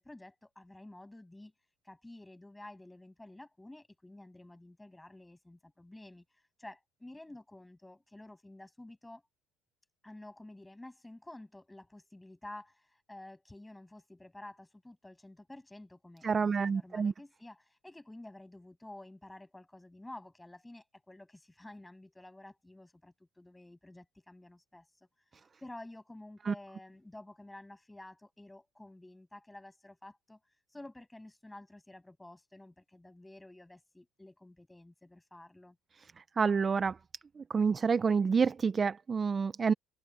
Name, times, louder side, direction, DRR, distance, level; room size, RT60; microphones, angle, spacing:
voice 1, 0.0-1.5 1.8-9.2 10.0-25.1 25.6-30.4 30.7-35.8, left 1 dB, 10° left, 7.5 m, -51 dB
voice 2, 16.2-17.1 26.5-26.6 36.4-37.0 37.4-39.7, right 5 dB, 25° right, 0.6 m, -28 dB
cardioid pair, 110°, 0 cm